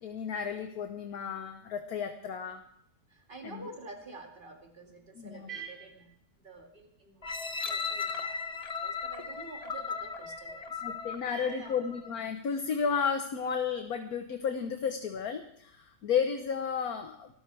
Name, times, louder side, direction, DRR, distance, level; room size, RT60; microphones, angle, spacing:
voice 1, 0.0-2.6 3.4-3.6 5.2-5.5 10.8-17.3, left 6 dB, 60° left, 6 dB, 1.5 m, -33 dB
voice 2, 3.1-7.3 7.6-10.8 11.3-11.8, right 3 dB, 30° right, 2 dB, 2.4 m, -48 dB
sound 1, 7.2-12.2 12.7-12.8, left 5 dB, 30° left, 0.7 m, -37 dB
25.5 x 14.0 x 3.4 m, 0.68 s
omnidirectional pair, 1.8 m